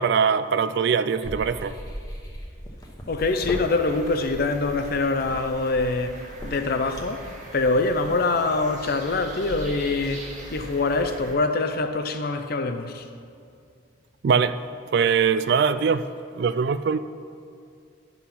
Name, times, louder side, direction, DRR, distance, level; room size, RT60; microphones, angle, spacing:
voice 1, 0.0-1.8 14.2-14.6 14.9-16.1 16.3-17.0, right 6 dB, 55° right, 0.3 m, -22 dB
sound 1, 1.2-7.3, equal, 15° left, 1.0 m, -37 dB
voice 2, 3.1-13.1, left 3 dB, 50° left, 0.5 m, -25 dB
sound 2, 3.2-11.3, right 1 dB, 40° right, 1.5 m, -41 dB
10.0 x 5.7 x 5.9 m
head